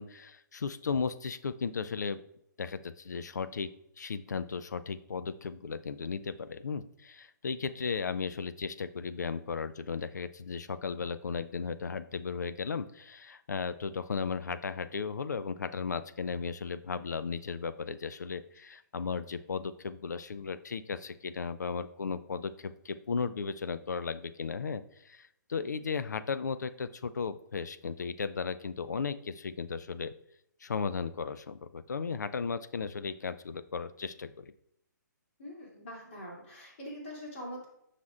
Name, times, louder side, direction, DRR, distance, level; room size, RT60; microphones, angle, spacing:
voice 1, 0.0-2.2 2.6-3.7 4.0-30.1 30.6-34.5, left 5 dB, 65° left, 12 dB, 0.4 m, -35 dB
voice 2, 35.4-37.7, equal, 40° left, -2 dB, 2.8 m, -43 dB
9.2 x 5.8 x 2.4 m, 0.77 s
figure-of-eight pair, 130°, 10 cm